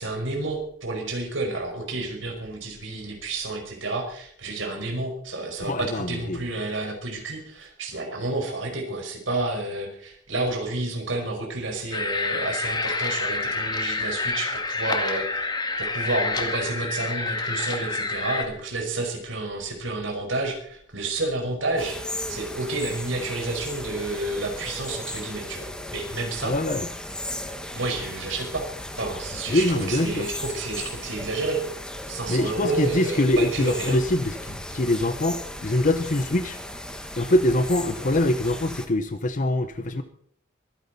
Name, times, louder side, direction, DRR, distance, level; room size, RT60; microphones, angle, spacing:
voice 1, 0.0-26.5 27.7-28.7 28.9-31.6 32.1-34.0, right 2 dB, 75° right, 2 dB, 5.3 m, -30 dB
voice 2, 5.6-6.4 26.4-26.9 29.5-30.3 32.3-36.6 37.2-40.0, left 1 dB, 40° left, 10 dB, 0.9 m, -24 dB
sound 1, 11.9-18.4, left 3 dB, 20° left, 2.0 m, -28 dB
sound 2, 21.8-38.9, left 1 dB, 5° left, 1.5 m, -36 dB
24.0 x 11.0 x 4.2 m, 0.63 s
head